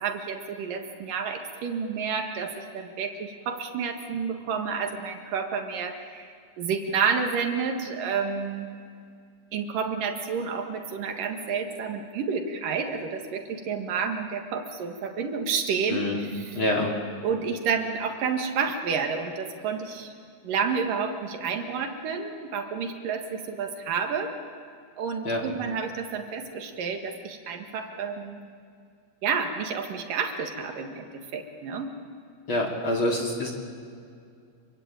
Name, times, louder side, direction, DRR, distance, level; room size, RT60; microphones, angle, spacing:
voice 1, 0.0-6.3 6.6-8.7 9.5-16.6 17.2-20.1 20.4-24.3 25.0-28.4 29.2-31.9, right 6 dB, 55° right, 5 dB, 2.6 m, -30 dB
voice 2, 16.5-16.9 25.2-25.4 32.5-33.5, left 1 dB, 35° left, 1 dB, 2.6 m, -26 dB
28.0 x 23.5 x 9.1 m, 2.4 s
omnidirectional pair, 5.8 m